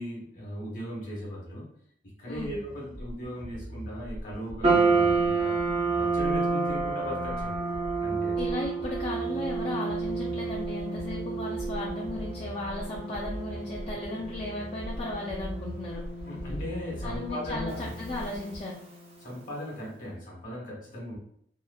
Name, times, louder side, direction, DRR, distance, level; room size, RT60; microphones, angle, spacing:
voice 1, 0.0-1.7 2.2-5.6 6.0-7.6 8.0-8.4 16.3-17.8 19.2-21.2, equal, 50° left, -4 dB, 1.1 m, -38 dB
sound 1, 2.2-18.6, equal, 75° left, 0.8 m, -41 dB
voice 2, 2.3-2.6 8.4-16.0 17.0-18.8, left 2 dB, 35° left, -4 dB, 0.3 m, -35 dB
sound 2, 4.6-19.0, right 4 dB, 35° right, 0.5 m, -30 dB
2.9 x 2.0 x 2.2 m, 0.68 s
head